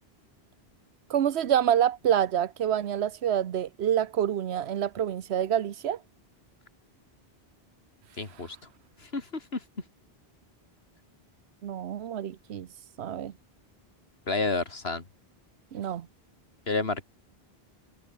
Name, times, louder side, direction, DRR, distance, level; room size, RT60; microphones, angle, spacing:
voice 1, 1.1-6.0 11.6-12.7 13.0-13.3 15.7-16.1, right 10 dB, 90° right, 1.1 m, -27 dB
voice 2, 8.2-8.6 9.0-9.6 14.3-15.0 16.7-17.0, left 3 dB, 75° left, 3.0 m, -30 dB
omnidirectional pair, 1.1 m